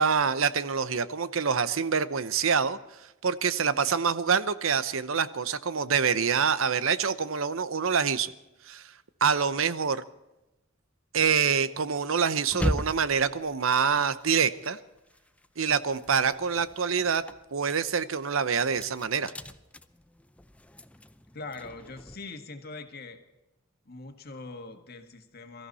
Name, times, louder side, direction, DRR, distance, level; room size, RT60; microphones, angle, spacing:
voice 1, 0.0-2.8 3.2-8.3 8.7-8.8 9.2-10.0 11.1-14.8 15.6-17.2 17.5-19.3, right 6 dB, 75° right, 15 dB, 0.8 m, -26 dB
sound 1, 12.5-15.5 15.8-22.2, equal, 5° left, 0.5 m, -38 dB
voice 2, 21.3-23.2 23.9-25.7, left 3 dB, 50° left, 6 dB, 1.8 m, -42 dB
23.0 x 14.0 x 4.2 m, 0.95 s
head